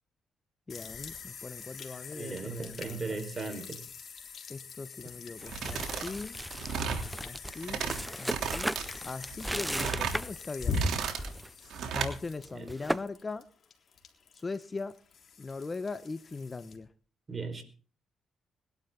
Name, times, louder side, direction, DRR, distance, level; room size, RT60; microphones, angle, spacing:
sound 1, 0.7-16.8, left 4 dB, 50° left, 3.6 m, -42 dB
voice 1, 0.7-3.2 4.5-6.4 7.2-7.9 8.2-8.7 9.0-10.9 11.9-13.5 14.3-15.0 15.4-16.9, left 3 dB, 30° left, 14 dB, 0.9 m, -40 dB
voice 2, 2.1-3.8 12.5-12.7 17.3-17.6, right 4 dB, 30° right, 7 dB, 4.6 m, -37 dB
sound 2, 5.4-10.5 10.8-11.5 11.8-12.0 12.4-13.0, right 1 dB, 5° right, 0.6 m, -36 dB
sound 3, 5.4-6.1 6.4-7.1 7.5-8.0 8.3-8.8 9.3-10.2 10.6-11.3 11.7-12.1, right 6 dB, 70° right, 3.1 m, -34 dB
21.5 x 12.0 x 3.8 m, 0.39 s
cardioid pair, 90°, 0 cm